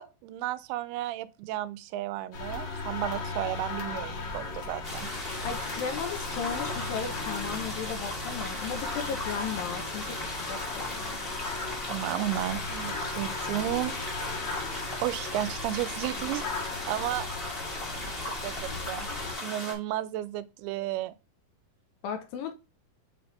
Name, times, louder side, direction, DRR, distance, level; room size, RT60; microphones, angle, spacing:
voice 1, 0.0-5.1 11.9-13.9 15.0-16.4 16.9-17.3 18.4-19.1 19.4-21.1, right 14 dB, 90° right, 2.6 m, -33 dB
sound 1, 2.3-19.3, left 3 dB, 45° left, 1.6 m, -37 dB
sound 2, 4.8-19.7, left 1 dB, 25° left, 1.2 m, -37 dB
voice 2, 5.4-11.0 22.0-22.5, left 6 dB, 75° left, 2.4 m, -35 dB
7.1 x 4.3 x 3.2 m
omnidirectional pair, 4.5 m